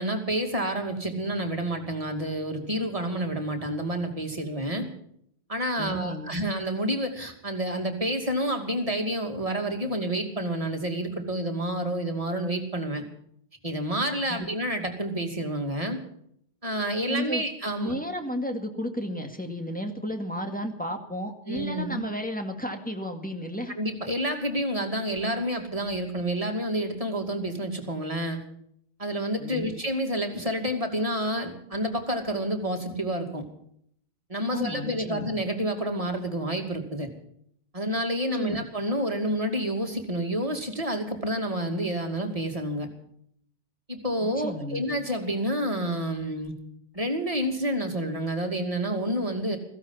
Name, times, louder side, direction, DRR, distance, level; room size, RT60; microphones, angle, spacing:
voice 1, 0.0-4.9 5.5-13.0 13.6-16.0 16.6-18.0 21.5-22.0 23.8-28.4 29.0-33.4 34.3-37.1 37.7-42.9 43.9-46.5 46.9-49.6, right 1 dB, 35° right, 3 dB, 2.6 m, -29 dB
voice 2, 5.8-6.4 14.3-14.5 17.1-17.4 17.8-23.7 29.4-29.7 34.5-35.3 38.3-38.6 44.2-44.8, equal, 10° left, 4 dB, 2.0 m, -33 dB
16.0 x 15.5 x 5.6 m, 0.68 s
omnidirectional pair, 1.0 m